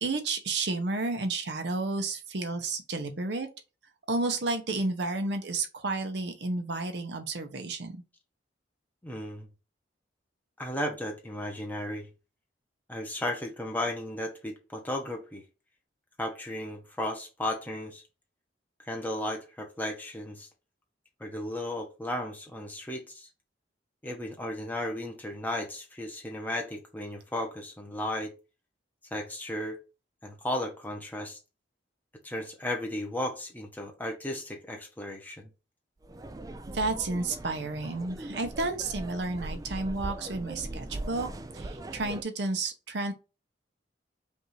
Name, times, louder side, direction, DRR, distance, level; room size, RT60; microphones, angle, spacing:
voice 1, 0.0-3.5 4.1-8.0 36.7-41.3 41.5-43.1, right 3 dB, 65° right, 0.7 m, -31 dB
voice 2, 9.0-9.5 10.6-12.1 12.9-15.4 16.2-18.0 18.9-20.5 21.2-23.3 24.0-28.3 29.1-29.8 30.2-31.4 32.2-35.5, left 1 dB, 10° left, 0.9 m, -35 dB
sound 1, 36.0-42.2, right 2 dB, 20° right, 0.3 m, -40 dB
5.3 x 2.6 x 3.0 m
head